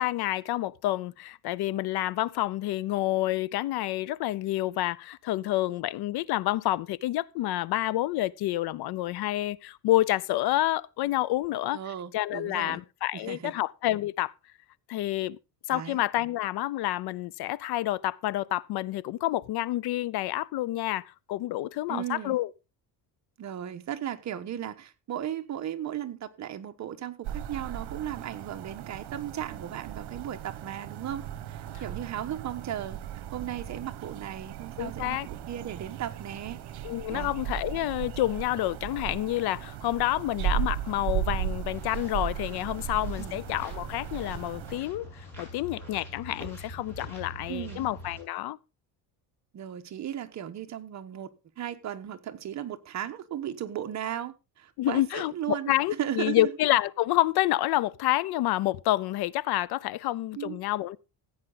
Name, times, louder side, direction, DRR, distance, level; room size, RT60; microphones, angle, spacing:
voice 1, 0.0-11.8 12.1-14.3 14.9-15.4 15.7-22.5 34.8-35.3 36.8-48.6 54.8-61.0, left 15 dB, 60° left, 0.6 m, -28 dB
voice 2, 11.7-12.8 13.1-13.5 15.7-16.0 21.9-22.4 23.4-36.6 37.1-37.3 43.2-43.4 47.5-47.9 49.5-51.3 51.6-56.5 60.3-60.6, right 10 dB, 40° right, 1.2 m, -36 dB
sound 1, 27.2-44.8, right 10 dB, 60° right, 1.5 m, -36 dB
sound 2, 41.7-48.2, left 1 dB, 5° left, 7.4 m, -44 dB
15.5 x 8.9 x 4.0 m
cardioid pair, 160°, 43 cm